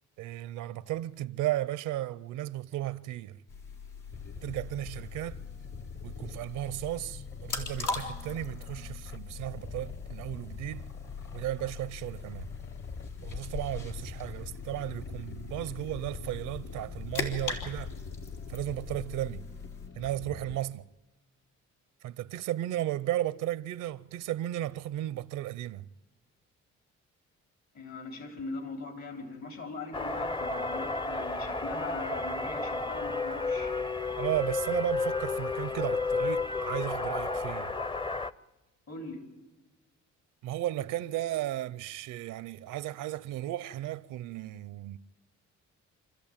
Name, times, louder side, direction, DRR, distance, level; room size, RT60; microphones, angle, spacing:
voice 1, 0.2-3.4 4.4-5.4 6.0-10.9 11.3-12.5 13.2-18.0 18.5-19.4 20.0-20.8 22.0-25.8 34.2-37.7 40.4-45.0, right 14 dB, 85° right, 0.7 m, -34 dB
sound 1, 3.5-19.9, left 4 dB, 85° left, 3.3 m, -41 dB
sound 2, 4.1-20.6, left 4 dB, 40° left, 1.2 m, -45 dB
voice 2, 27.7-33.7 38.9-39.2, left 3 dB, 60° left, 4.2 m, -40 dB
sound 3, 29.9-38.3, left 3 dB, 15° left, 0.6 m, -32 dB
27.0 x 14.0 x 8.8 m
cardioid pair, 90°, 30 cm